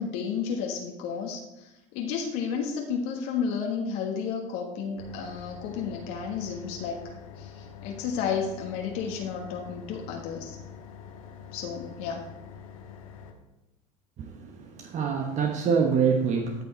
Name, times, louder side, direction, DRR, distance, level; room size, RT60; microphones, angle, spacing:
voice 1, 0.0-7.0 7.4-10.6 11.5-12.2, left 6 dB, 70° left, 1 dB, 1.5 m, -32 dB
sound 1, 5.0-13.3, left 7 dB, 90° left, 1.4 m, -45 dB
voice 2, 14.2-16.6, right 6 dB, 45° right, 4 dB, 1.1 m, -26 dB
13.5 x 5.5 x 4.4 m, 0.97 s
hypercardioid pair, 95°, 17 cm